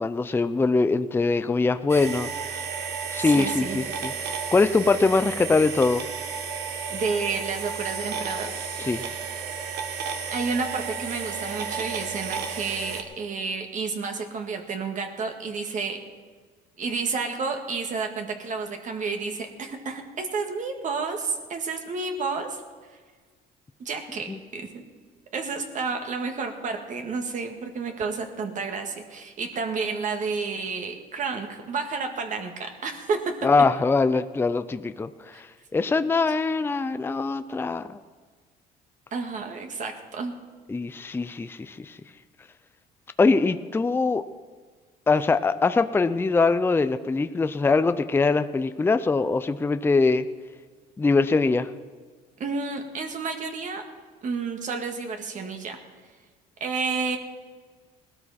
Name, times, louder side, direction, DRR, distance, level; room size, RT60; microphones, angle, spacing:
voice 1, 0.0-2.6 3.1-6.1 8.8-9.0 24.3-24.4 33.4-38.0 40.7-42.0 43.2-44.2 45.1-50.3 51.0-51.7, left 3 dB, 15° left, 11 dB, 0.5 m, -23 dB
sound 1, 1.9-13.0, right 6 dB, 80° right, 1.6 m, -33 dB
voice 2, 3.2-3.8 6.9-8.5 10.3-16.0 16.8-22.6 23.8-24.8 25.3-33.3 35.3-35.4 35.8-35.9 39.1-40.3 52.4-53.8 54.2-55.8 56.6-57.2, right 4 dB, 50° right, 4 dB, 1.8 m, -30 dB
18.5 x 13.0 x 4.2 m, 1.5 s
cardioid pair, 110°, 17 cm